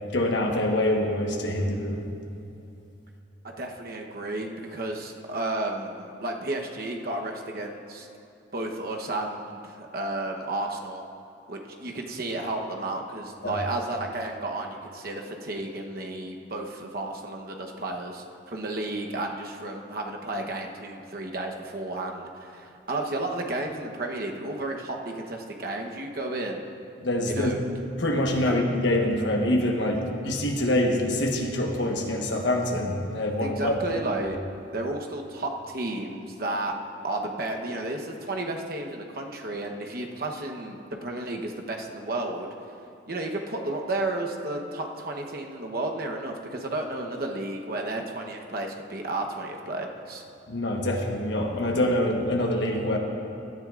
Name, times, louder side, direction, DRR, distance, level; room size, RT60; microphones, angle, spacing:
voice 1, 0.1-2.0 13.4-13.5 27.0-27.5 28.0-33.7 50.5-53.0, left 1 dB, 65° left, 1 dB, 1.2 m, -25 dB
voice 2, 3.6-8.1 8.5-11.0 11.5-26.6 27.3-27.6 28.4-28.5 33.4-34.4 34.7-36.7 37.0-42.5 43.1-50.2, right 2 dB, 50° right, 1 dB, 1.0 m, -32 dB
16.5 x 12.5 x 2.5 m, 2.8 s
head